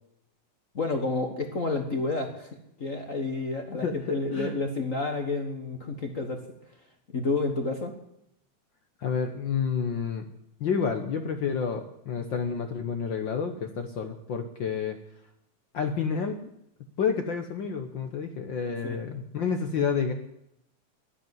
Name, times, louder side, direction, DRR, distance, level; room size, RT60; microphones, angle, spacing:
voice 1, 0.7-6.4 7.1-7.9 18.8-19.0, left 3 dB, 40° left, 4 dB, 1.1 m, -30 dB
voice 2, 3.8-4.5 9.0-10.2 10.6-15.0 15.7-16.4 17.0-20.1, left 6 dB, 65° left, 6 dB, 1.2 m, -29 dB
12.0 x 10.5 x 9.6 m, 0.78 s
omnidirectional pair, 3.4 m